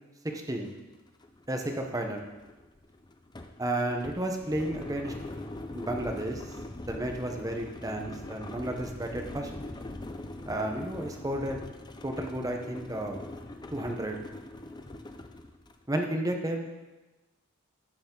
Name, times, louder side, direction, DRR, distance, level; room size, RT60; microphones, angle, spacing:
voice 1, 0.2-0.7 1.5-2.2 3.6-5.1 5.7-6.6 6.9-9.5 10.5-11.6 12.0-13.2 13.7-14.2 15.9-16.7, right 1 dB, 15° right, 3 dB, 1.0 m, -32 dB
sound 1, 0.7-0.8 1.1-15.8, left 1 dB, 20° left, 0.5 m, -42 dB
14.5 x 6.9 x 3.9 m, 1.1 s
head